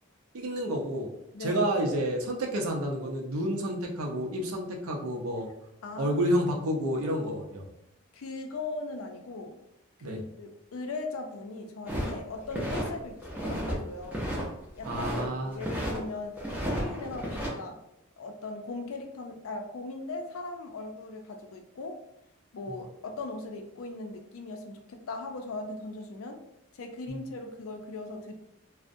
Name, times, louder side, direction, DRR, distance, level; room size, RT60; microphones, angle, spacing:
voice 1, 0.3-1.1 1.4-5.5 6.0-7.6 10.0-10.2 14.8-15.6 22.7-22.8 27.1-27.2, equal, 85° right, 2 dB, 0.5 m, -30 dB
voice 2, 1.3-1.6 5.8-6.2 8.1-9.6 10.0-13.1 13.4-14.2 14.8-15.1 15.4-16.4 16.7-17.8 18.2-22.0 22.5-26.4 26.7-28.3, left 3 dB, 80° left, 4 dB, 0.4 m, -39 dB
sound 1, 11.9-12.9 13.2-13.8 14.0-15.3 15.6-16.0 16.4-17.5, equal, 10° right, 0.4 m, -32 dB
2.5 x 2.0 x 2.5 m, 0.81 s
head